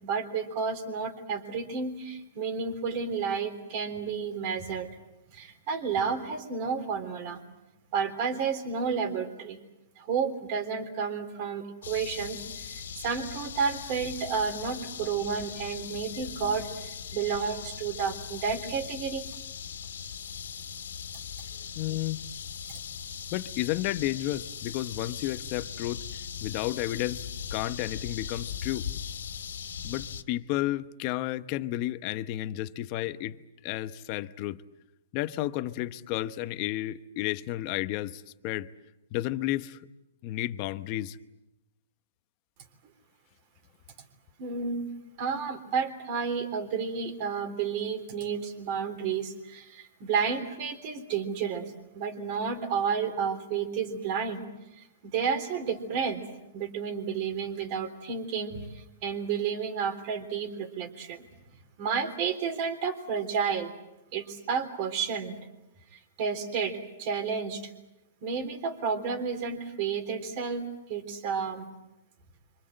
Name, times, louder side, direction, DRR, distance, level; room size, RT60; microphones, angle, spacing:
voice 1, 0.0-4.9 5.3-7.4 7.9-9.6 10.0-19.3 44.4-44.9 45.2-54.4 54.7-56.2 56.5-61.2 61.8-63.7 64.1-65.4 65.9-67.7 68.2-71.7, right 6 dB, 35° right, 3.5 m, -31 dB
sound 1, 11.8-30.2, left 8 dB, 90° left, 2.1 m, -39 dB
voice 2, 21.8-22.2 23.3-26.0 26.4-27.2 27.5-28.9 29.8-34.6 35.1-38.7 39.1-39.8 40.2-41.2, left 15 dB, 30° left, 0.9 m, -32 dB
30.0 x 25.5 x 7.8 m
hypercardioid pair, 165°, 0 cm